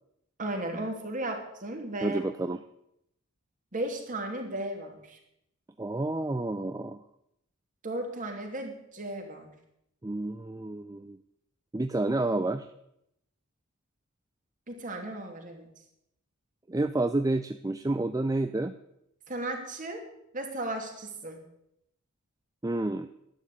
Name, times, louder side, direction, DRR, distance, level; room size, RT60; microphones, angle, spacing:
voice 1, 0.4-2.2 3.7-5.2 7.8-9.5 14.7-15.7 19.3-20.1 20.3-21.4, right 1 dB, 40° right, 3 dB, 2.7 m, -35 dB
voice 2, 2.0-2.6 5.8-7.0 10.0-11.2 11.7-12.7 16.7-18.7 22.6-23.1, right 2 dB, 15° right, 10 dB, 0.5 m, -29 dB
11.5 x 9.9 x 8.3 m, 0.79 s
head